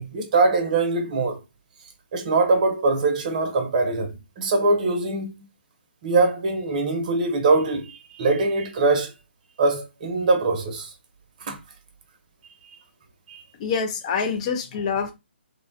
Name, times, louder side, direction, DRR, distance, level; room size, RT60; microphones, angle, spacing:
voice 1, 0.0-1.4 2.1-5.3 6.0-9.1 9.6-10.9 11.5-11.6 13.3-13.4, right 3 dB, 40° right, 0.7 m, -22 dB
voice 2, 13.6-15.1, left 6 dB, 35° left, 0.6 m, -26 dB
3.1 x 2.2 x 2.7 m
figure-of-eight pair, 140°, 6 cm